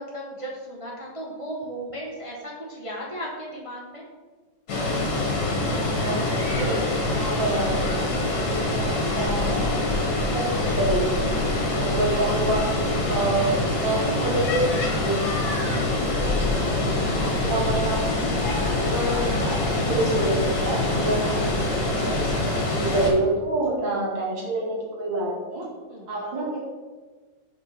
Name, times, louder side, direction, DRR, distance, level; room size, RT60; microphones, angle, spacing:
voice 1, 0.0-4.0 11.5-11.9 18.2-18.7 25.9-26.1, equal, 25° right, -4 dB, 0.8 m, -36 dB
Water, 4.7-23.1, left 2 dB, 65° left, 2.0 m, -25 dB
voice 2, 5.9-11.2 11.8-15.2 16.0-16.4 16.7-16.8 17.2-18.0 18.7-21.5 21.8-25.6 26.1-26.6, right 2 dB, 75° right, -4 dB, 2.7 m, -28 dB
5.3 x 5.3 x 5.6 m, 1.4 s
omnidirectional pair, 2.1 m